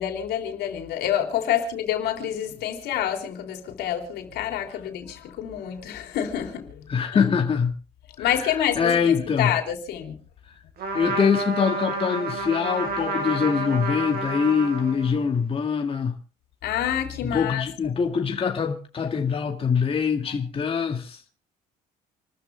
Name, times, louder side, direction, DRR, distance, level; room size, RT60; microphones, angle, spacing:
voice 1, 0.0-6.7 7.1-7.3 8.2-9.1 9.4-10.1 16.6-17.6, left 10 dB, 80° left, 3.9 m, -27 dB
voice 2, 6.9-7.7 8.2-9.5 10.9-16.2 17.2-21.2, left 6 dB, 35° left, 2.1 m, -24 dB
Trumpet, 10.8-15.4, right 3 dB, 65° right, 7.2 m, -30 dB
28.5 x 14.0 x 2.3 m
cardioid pair, 110°, 17 cm